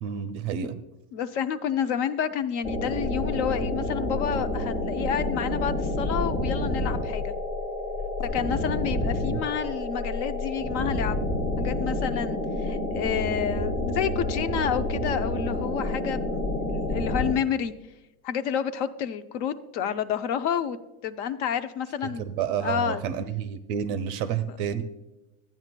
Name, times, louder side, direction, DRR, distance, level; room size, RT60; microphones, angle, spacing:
voice 1, 0.0-0.8 9.0-9.4 22.2-24.8, right 8 dB, 35° right, 10 dB, 0.5 m, -30 dB
voice 2, 1.1-7.3 8.2-11.2 11.6-16.4 16.7-17.7 18.2-20.8 21.0-22.3 22.6-23.0, left 8 dB, 55° left, 11 dB, 0.6 m, -29 dB
sound 1, 2.6-17.3, left 1 dB, 15° left, 0.9 m, -29 dB
12.5 x 9.0 x 2.2 m, 0.99 s
supercardioid pair, 150°, 45 cm